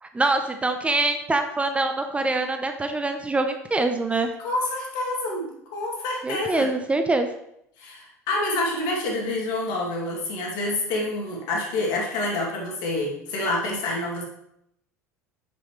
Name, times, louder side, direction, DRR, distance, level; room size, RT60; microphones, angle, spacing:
voice 1, 0.0-4.3 6.2-7.3, right 2 dB, 15° right, 7 dB, 0.6 m, -24 dB
voice 2, 4.4-6.7 7.8-14.2, left 2 dB, 55° left, -2 dB, 2.5 m, -27 dB
7.9 x 7.0 x 3.2 m, 0.76 s
figure-of-eight pair, 70°, 9 cm